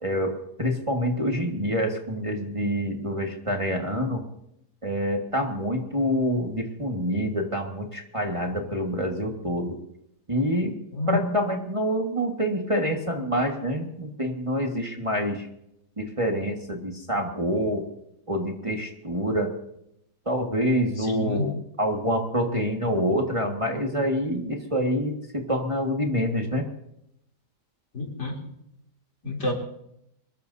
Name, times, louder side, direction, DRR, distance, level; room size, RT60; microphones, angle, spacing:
voice 1, 0.0-4.2 4.8-9.8 10.3-10.7 11.1-15.5 16.0-17.8 18.3-19.5 20.3-26.6, equal, 20° right, 1 dB, 1.7 m, -26 dB
voice 2, 21.0-21.5 27.9-28.4 29.2-29.5, left 3 dB, 75° left, -1 dB, 4.0 m, -29 dB
24.5 x 21.0 x 2.8 m, 0.78 s
omnidirectional pair, 1.8 m